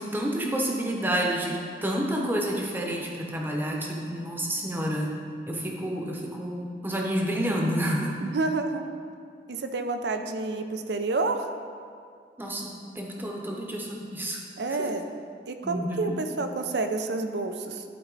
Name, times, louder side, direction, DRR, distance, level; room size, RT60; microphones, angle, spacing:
voice 1, 0.0-5.1 5.5-8.2 12.4-14.4 14.7-14.9 15.6-16.1, right 1 dB, 10° right, -1 dB, 0.9 m, -29 dB
voice 2, 8.2-8.8 9.5-11.5 14.6-15.0 15.5-17.8, right 3 dB, 70° right, 7 dB, 0.6 m, -29 dB
12.0 x 4.1 x 4.0 m, 2.3 s
head